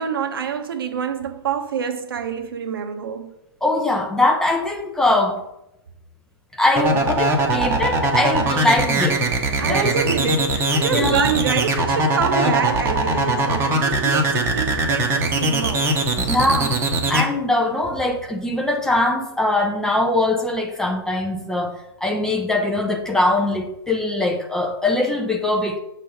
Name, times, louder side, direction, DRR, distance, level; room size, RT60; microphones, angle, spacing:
voice 1, 0.0-3.3 9.6-15.9, right 7 dB, 60° right, 0.9 m, -26 dB
voice 2, 3.6-5.4 6.5-9.2 9.7-9.9 10.9-11.3 12.3-12.4 16.2-25.8, left 2 dB, 5° left, 0.5 m, -22 dB
sound 1, 6.8-17.2, right 2 dB, 15° right, 0.8 m, -20 dB
7.5 x 3.3 x 5.1 m
figure-of-eight pair, 115°, 14 cm